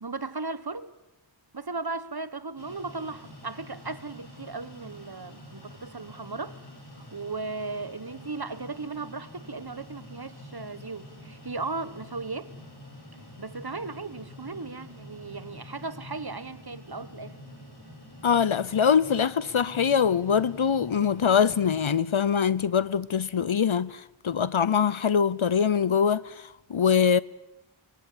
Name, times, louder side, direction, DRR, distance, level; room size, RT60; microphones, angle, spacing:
voice 1, 0.0-0.9 1.5-6.6 7.1-12.5 13.4-17.3, right 3 dB, 50° right, 1.4 m, -36 dB
sound 1, 2.6-22.0, left 1 dB, 55° left, 5.9 m, -47 dB
voice 2, 18.2-27.2, left 7 dB, 85° left, 0.8 m, -23 dB
25.0 x 22.0 x 8.6 m
wide cardioid pair, 40°, 47 cm